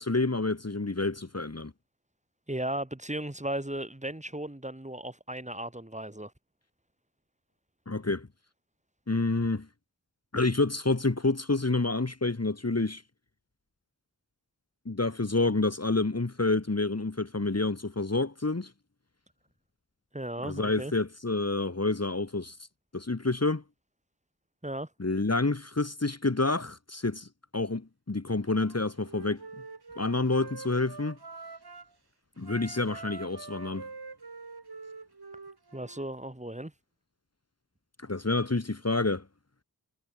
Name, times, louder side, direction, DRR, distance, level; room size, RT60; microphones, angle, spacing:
voice 1, 0.0-1.7 7.9-8.3 9.1-9.7 10.3-13.0 14.8-18.7 20.4-22.6 22.9-23.6 25.0-29.4 30.0-31.2 32.4-33.9 38.0-39.2, left 3 dB, 35° left, 3.2 m, -28 dB
voice 2, 2.5-6.3 20.1-20.9 24.6-24.9 35.7-36.7, right 1 dB, 15° right, 6.6 m, -36 dB
Wind instrument woodwind instrument, 28.5-31.9 32.4-36.1, right 4 dB, 60° right, 6.2 m, -45 dB
cardioid pair, 50°, 43 cm